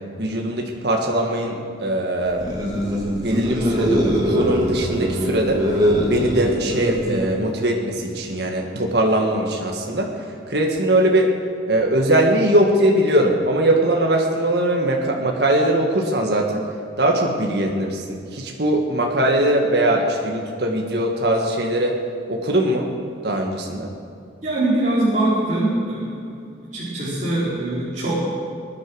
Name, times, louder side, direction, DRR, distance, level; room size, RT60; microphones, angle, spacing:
voice 1, 0.2-2.5 3.1-5.6 6.1-10.1 10.5-11.3 11.7-16.6 17.0-22.0 22.3-22.9 23.2-23.9, right 1 dB, 65° right, 1 dB, 1.7 m, -21 dB
sound 1, 2.3-7.4, equal, 20° right, 2.3 m, -22 dB
voice 2, 24.4-26.4 26.7-28.2, right 1 dB, 40° right, -10 dB, 4.2 m, -22 dB
20.5 x 10.0 x 6.3 m, 2.3 s
head